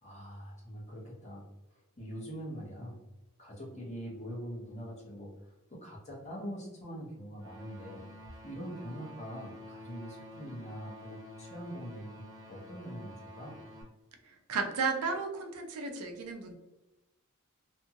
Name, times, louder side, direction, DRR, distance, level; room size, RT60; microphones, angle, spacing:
voice 1, 0.0-1.4 1.7-3.0 3.4-8.1 8.4-13.6, equal, 30° left, -4 dB, 0.9 m, -43 dB
sound 1, 7.4-13.8, left 1 dB, 15° right, 0.5 m, -50 dB
voice 2, 14.2-16.5, right 4 dB, 80° right, 4 dB, 0.5 m, -34 dB
2.6 x 2.4 x 2.8 m, 0.97 s
head